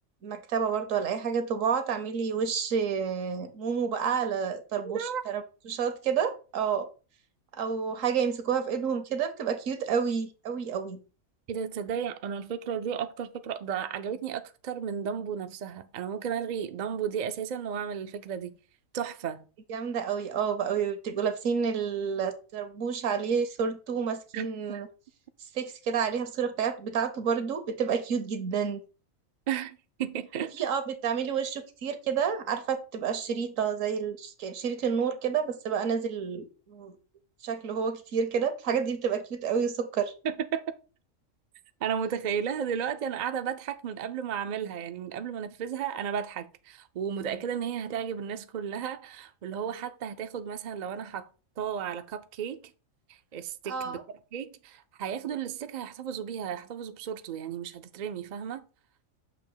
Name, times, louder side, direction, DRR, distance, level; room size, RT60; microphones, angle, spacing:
voice 1, 0.2-6.9 7.5-11.0 19.7-24.9 25.5-28.8 30.5-36.9 37.4-40.1 53.7-54.0, right 6 dB, 75° right, 1.3 m, -29 dB
voice 2, 4.8-5.2 11.5-18.5 18.9-19.5 24.3-24.5 29.5-30.7 40.2-40.7 41.8-51.3 51.6-52.7 53.1-54.0 54.3-58.6, right 8 dB, 55° right, 0.4 m, -34 dB
6.9 x 2.9 x 5.5 m
omnidirectional pair, 1.4 m